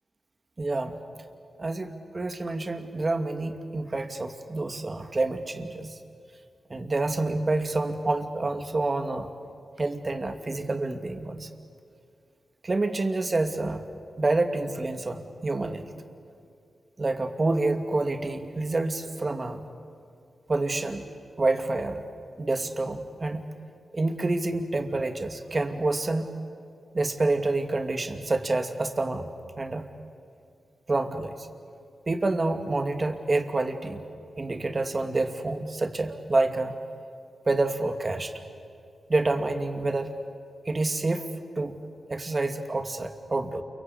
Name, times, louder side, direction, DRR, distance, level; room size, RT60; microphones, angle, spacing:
voice 1, 0.6-1.0 1.6-6.0 6.7-9.3 9.8-11.5 12.6-13.8 14.2-15.9 17.0-19.7 20.5-21.1 21.4-22.0 22.4-23.4 23.9-26.4 26.9-29.9 30.9-31.5 32.1-34.0 34.4-36.8 37.5-38.3 39.1-40.2 40.6-41.8 42.1-43.6, right 2 dB, 40° right, 6 dB, 2.5 m, -28 dB
29.0 x 24.0 x 8.6 m, 2.3 s
cardioid pair, 50°, 0 cm